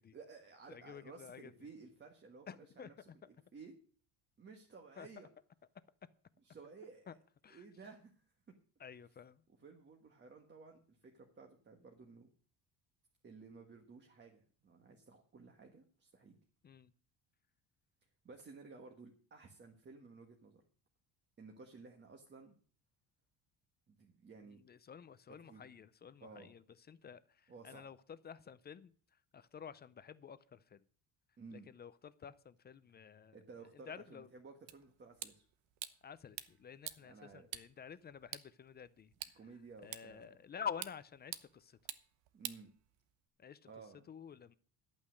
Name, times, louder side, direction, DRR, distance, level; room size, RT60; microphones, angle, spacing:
voice 1, 0.1-2.5 2.7-3.7 4.4-5.3 6.4-7.2 7.5-8.5 9.6-12.3 13.2-16.4 18.2-20.6 21.4-22.5 23.9-24.6 25.4-25.7 26.2-26.5 27.5-27.9 31.4-31.7 33.3-35.4 37.0-37.5 39.3-40.4 42.3-42.7 43.6-44.1, right 4 dB, 25° right, 2 dB, 1.4 m, -55 dB
voice 2, 0.7-1.5 2.5-3.3 5.0-5.1 7.1-7.2 7.4-7.6 8.8-9.4 16.6-16.9 24.6-28.9 29.3-30.8 31.7-33.4 33.9-34.3 36.0-39.1 39.8-41.8 43.4-43.6 44.1-44.5, left 7 dB, 25° left, 15 dB, 0.4 m, -50 dB
sound 1, 34.7-43.3, right 13 dB, 85° right, 1.0 m, -50 dB
11.5 x 8.7 x 6.3 m, 0.43 s
cardioid pair, 150°, 43 cm